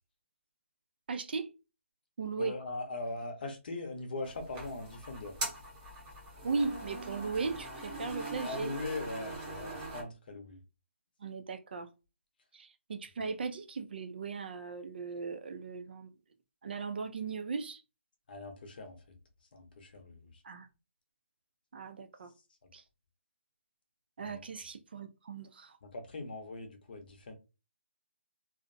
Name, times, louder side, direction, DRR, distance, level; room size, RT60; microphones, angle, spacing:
voice 1, 1.1-1.5 2.2-2.5 6.4-8.7 11.2-11.9 12.5-16.1 16.6-17.8 20.4-20.7 21.7-22.3 22.7-22.8 24.2-25.8, right 4 dB, 50° right, 0.4 m, -37 dB
voice 2, 2.4-5.4 8.4-10.6 18.3-19.0 19.5-20.4 24.2-24.4 25.8-27.3, left 2 dB, 45° left, 0.7 m, -41 dB
sound 1, 4.2-10.0, right 2 dB, 15° right, 0.7 m, -42 dB
2.5 x 2.0 x 2.5 m
hypercardioid pair, 160°, 7 cm